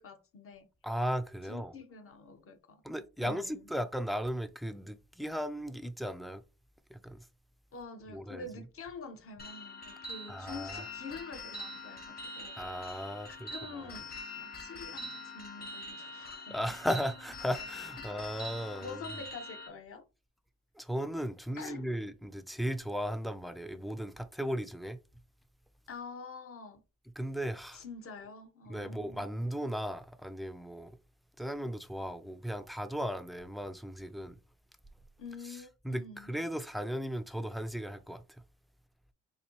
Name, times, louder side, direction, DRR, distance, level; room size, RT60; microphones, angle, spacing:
voice 1, 0.0-0.7 1.4-2.8 3.2-3.6 7.7-12.6 13.5-16.6 18.0-18.1 18.8-20.0 21.5-21.9 25.9-26.8 27.7-29.3 35.2-36.3, left 4 dB, 50° left, 0.9 m, -46 dB
voice 2, 0.8-1.7 2.8-6.4 6.9-7.2 8.1-8.5 10.3-10.8 12.6-13.9 16.5-19.1 20.8-25.0 27.2-27.8 28.7-30.9 31.4-34.4 35.4-38.2, equal, ahead, 0.4 m, -36 dB
sound 1, 9.4-19.7, left 2 dB, 30° left, 1.2 m, -44 dB
4.1 x 2.6 x 2.9 m
cardioid pair, 90°, 30 cm